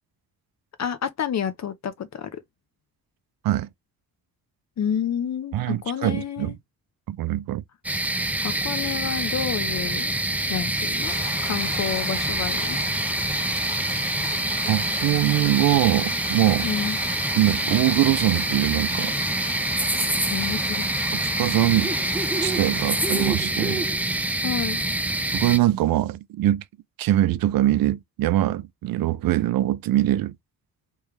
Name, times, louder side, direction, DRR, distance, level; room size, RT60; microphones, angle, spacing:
voice 1, 0.8-2.4 4.8-6.6 8.4-10.1 10.5-11.1 11.4-12.8 16.6-17.0 20.3-20.9 24.4-24.8, left 8 dB, 50° left, 0.8 m, -29 dB
voice 2, 5.5-6.6 7.1-7.6 14.7-16.7 17.4-19.1 21.1-21.9 22.4-23.8 25.3-26.6 27.0-30.3, right 14 dB, 75° right, 0.5 m, -22 dB
sound 1, 7.8-25.6, right 1 dB, 5° right, 0.4 m, -26 dB
sound 2, 11.0-23.3, left 4 dB, 85° left, 1.7 m, -37 dB
3.3 x 3.2 x 3.2 m
cardioid pair, 95°, 36 cm